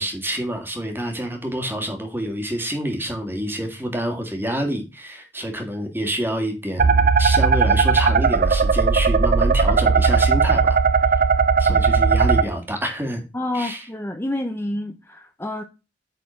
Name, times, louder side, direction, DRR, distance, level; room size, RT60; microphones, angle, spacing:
voice 1, 0.0-10.8 11.1-11.2 11.6-13.2 13.5-13.8, right 1 dB, 10° right, 4 dB, 1.8 m, -27 dB
sound 1, 6.8-12.4, right 5 dB, 50° right, 0.5 m, -17 dB
voice 2, 13.3-15.6, left 1 dB, 15° left, 5 dB, 0.6 m, -28 dB
9.1 x 4.2 x 5.7 m, 0.29 s
head